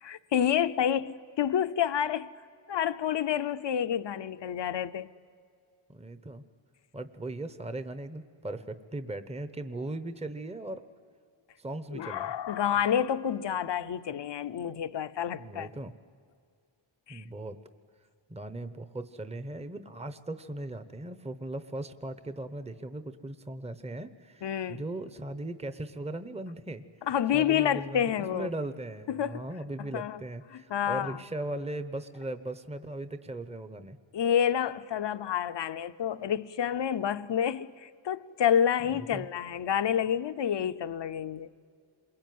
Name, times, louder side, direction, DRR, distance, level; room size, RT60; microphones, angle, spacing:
voice 1, 0.0-2.3 2.7-5.1 11.9-15.7 17.1-17.2 24.4-24.8 27.1-28.5 29.1-29.5 29.8-30.2 30.5-31.2 34.1-41.5, left 9 dB, 60° left, 0.8 m, -29 dB
voice 2, 5.9-6.4 6.9-10.8 11.6-12.3 15.4-15.9 17.1-17.6 18.3-26.8 27.3-34.0 38.9-39.3, right 1 dB, 15° right, 0.9 m, -38 dB
28.0 x 22.5 x 9.4 m
wide cardioid pair, 115°, 48 cm